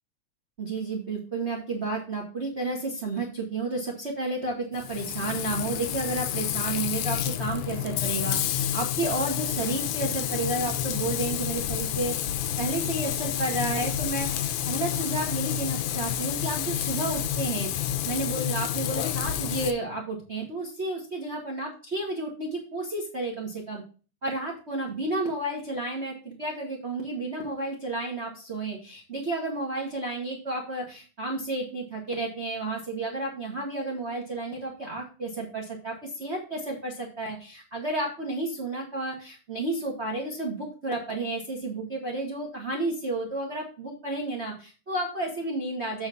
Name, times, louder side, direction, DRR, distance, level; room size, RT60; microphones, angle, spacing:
voice 1, 0.6-12.2 12.6-23.8 24.2-46.1, right 2 dB, 35° right, -2 dB, 1.1 m, -31 dB
Frying (food), 4.7-19.7, left 10 dB, 85° left, 2.0 m, -29 dB
8.2 x 3.9 x 6.1 m, 0.36 s
omnidirectional pair, 3.3 m